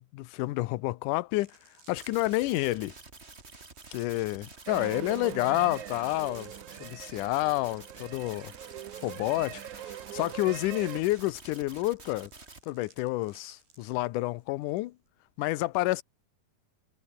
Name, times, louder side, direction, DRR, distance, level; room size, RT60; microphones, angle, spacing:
voice 1, 0.0-1.6 1.9-2.9 3.9-6.5 6.8-8.5 9.0-12.3 12.7-14.9 15.4-16.0, left 19 dB, 75° left, 2.0 m, -29 dB
sound 1, 1.3-14.8 15.1-15.4, right 5 dB, 85° right, 8.8 m, -61 dB
sound 2, 2.0-12.6, right 3 dB, 20° right, 2.2 m, -50 dB
sound 3, 4.7-11.0, right 12 dB, 65° right, 2.2 m, -42 dB
omnidirectional pair, 4.3 m